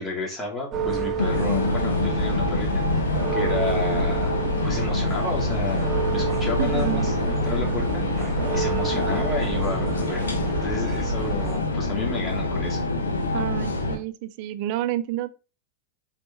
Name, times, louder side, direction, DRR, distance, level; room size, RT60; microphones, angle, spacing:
voice 1, 0.0-3.1 3.3-4.4 4.6-8.0 8.5-12.8, left 3 dB, 20° left, 2.6 m, -32 dB
sound 1, 0.7-11.6, right 4 dB, 25° right, 1.7 m, -30 dB
sound 2, 1.2-14.0, left 2 dB, 70° left, 1.3 m, -26 dB
voice 2, 6.6-7.1 13.3-15.3, right 13 dB, 45° right, 0.6 m, -29 dB
7.7 x 4.2 x 3.1 m
figure-of-eight pair, 90°, 0 cm